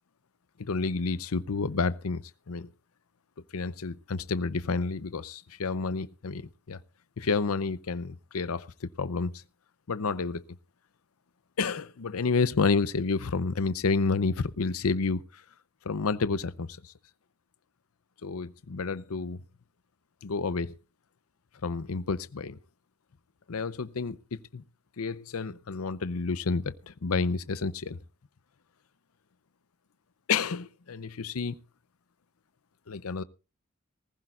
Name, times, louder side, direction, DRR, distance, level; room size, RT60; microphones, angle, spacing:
voice 1, 0.6-2.7 3.5-6.4 6.7-6.8 7.2-9.4 9.9-10.4 11.6-15.4 15.8-16.9 18.2-19.4 20.2-20.7 21.6-22.6 23.5-24.6 25.0-28.0 30.3-31.6 32.9-33.2, left 4 dB, 90° left, 0.7 m, -30 dB
19.5 x 15.0 x 2.4 m
head